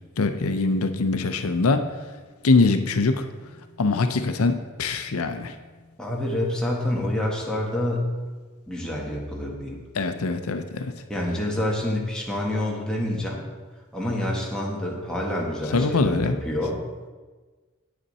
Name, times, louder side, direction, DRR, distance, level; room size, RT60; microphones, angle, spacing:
voice 1, 0.2-1.8 2.4-3.2 3.8-5.5 10.0-10.9 15.7-16.4, left 3 dB, 90° left, 8 dB, 0.6 m, -23 dB
voice 2, 6.0-8.1 8.7-9.8 11.1-13.4 13.9-16.8, left 1 dB, 5° left, -3 dB, 1.5 m, -27 dB
8.8 x 8.2 x 4.2 m, 1.3 s
head